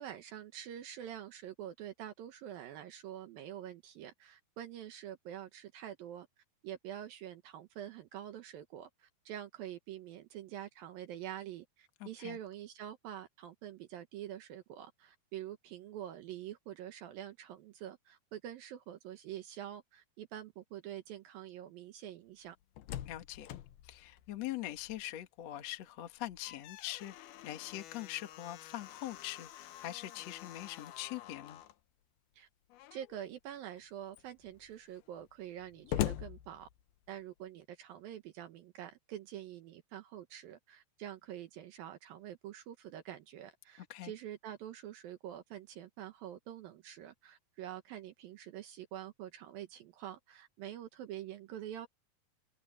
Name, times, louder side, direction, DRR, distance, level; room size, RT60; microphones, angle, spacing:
voice 1, 0.0-6.3 6.6-22.6 32.4-32.5 32.9-36.7 37.1-51.9, right 11 dB, 70° right, 2.8 m, -46 dB
voice 2, 12.0-12.4 23.1-23.5 23.8-31.6 43.9-44.1, left 14 dB, 55° left, 2.3 m, -43 dB
Slam, 22.5-25.3 25.6-25.7 26.2-31.8 32.7-33.2 33.8-33.9 34.1-37.2, left 12 dB, 75° left, 2.9 m, -44 dB
omnidirectional pair, 4.5 m